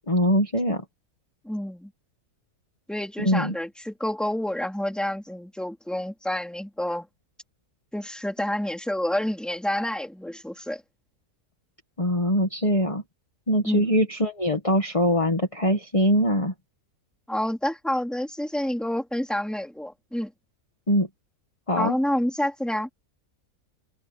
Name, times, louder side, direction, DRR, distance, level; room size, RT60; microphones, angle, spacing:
voice 1, 0.1-0.8 3.2-3.5 12.0-13.0 13.5-16.5 20.9-21.1 21.7-21.9, equal, 25° left, 1.8 m, -22 dB
voice 2, 1.4-1.9 2.9-7.1 7.9-10.8 13.6-13.9 17.3-20.3 21.8-22.9, left 1 dB, ahead, 2.7 m, -28 dB
omnidirectional pair, 1.5 m